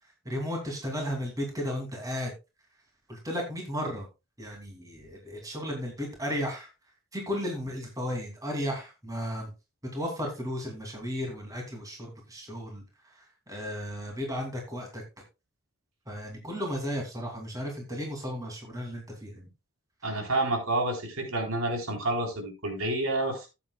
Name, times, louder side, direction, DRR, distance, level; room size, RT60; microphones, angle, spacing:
voice 1, 0.2-2.3 3.1-4.1 4.4-6.7 7.1-9.5 9.9-15.0 16.1-19.5, equal, 15° right, 1 dB, 2.5 m, -34 dB
voice 2, 20.0-23.5, right 2 dB, 75° right, 2 dB, 3.7 m, -29 dB
14.5 x 8.5 x 2.2 m, 0.26 s
head